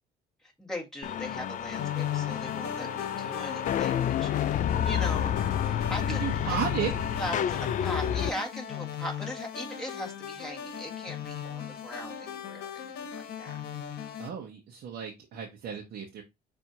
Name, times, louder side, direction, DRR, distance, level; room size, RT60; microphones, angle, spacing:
voice 1, 0.4-5.4 5.6-6.6 7.2-13.5, left 1 dB, 5° left, 1.8 m, -40 dB
sound 1, 1.0-8.3, left 9 dB, 50° left, 0.4 m, -30 dB
sound 2, 1.7-14.3, left 9 dB, 70° left, 1.0 m, -37 dB
voice 2, 6.0-7.0 14.2-16.2, right 8 dB, 65° right, 0.9 m, -34 dB
6.8 x 2.7 x 2.9 m
cardioid pair, 110°, 17 cm